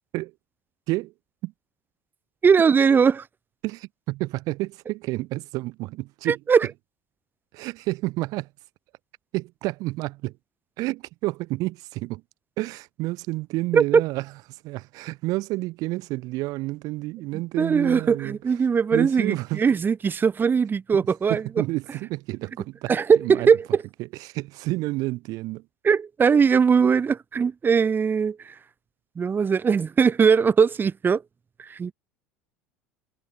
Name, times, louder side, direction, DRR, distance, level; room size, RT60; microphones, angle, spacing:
voice 1, 2.4-3.2 6.3-6.7 13.7-14.0 17.6-21.4 22.9-23.7 25.8-28.5 29.2-31.2 31.6-31.9, right 6 dB, 25° right, 2.6 m, -20 dB
voice 2, 3.6-6.4 7.5-8.5 9.3-10.3 10.8-12.2 12.6-14.2 14.6-18.4 18.9-19.6 21.3-23.5 24.2-25.6, right 20 dB, 55° right, 1.1 m, -30 dB
figure-of-eight pair, 70°, 8 cm